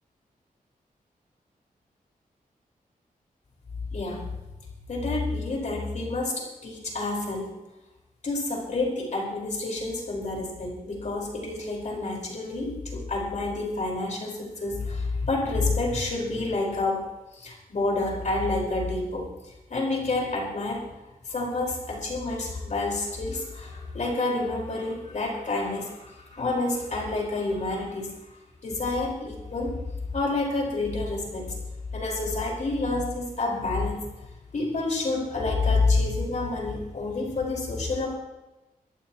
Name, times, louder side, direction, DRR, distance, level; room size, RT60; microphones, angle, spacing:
voice 1, 3.9-4.2 4.9-7.5 8.2-17.0 17.4-19.3 19.7-20.8 21.3-28.1 28.6-29.7 30.1-31.4 31.9-34.0 34.5-38.2, left 2 dB, 55° left, -1 dB, 4.7 m, -28 dB
23.5 x 14.5 x 3.0 m, 1.1 s
wide cardioid pair, 175°, 15 cm